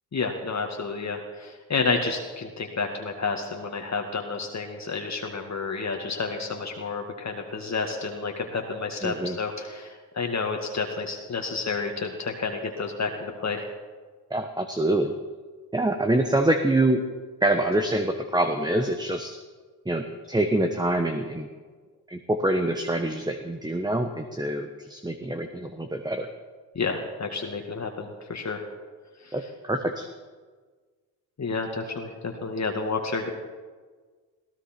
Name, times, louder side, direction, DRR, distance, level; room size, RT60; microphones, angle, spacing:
voice 1, 0.1-13.7 26.8-28.6 29.2-29.4 31.4-33.3, left 4 dB, 40° left, 2 dB, 2.0 m, -30 dB
voice 2, 9.0-9.4 14.3-15.1 15.7-17.0 17.4-19.4 19.9-21.5 22.1-26.3 29.3-30.0, right 1 dB, 10° right, 6 dB, 1.3 m, -25 dB
20.0 x 16.0 x 4.5 m, 1.4 s
supercardioid pair, 60°, 40 cm